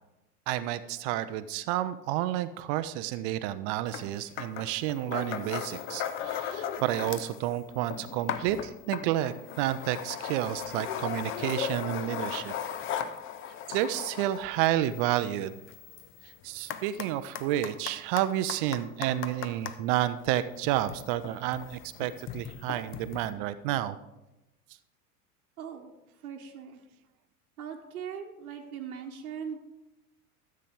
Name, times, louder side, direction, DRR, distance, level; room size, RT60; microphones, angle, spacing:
voice 1, 0.5-12.5 13.7-15.5 16.4-24.0, right 13 dB, 35° right, 13 dB, 0.5 m, -30 dB
sound 1, 3.9-4.1 4.4-7.4 7.7-19.8 20.5-23.3, left 9 dB, 25° left, 0.6 m, -37 dB
voice 2, 25.6-25.9 26.2-26.8 27.6-29.6, right 7 dB, 70° right, 1 dB, 1.1 m, -40 dB
13.5 x 7.6 x 3.6 m, 0.95 s
figure-of-eight pair, 80°, 46 cm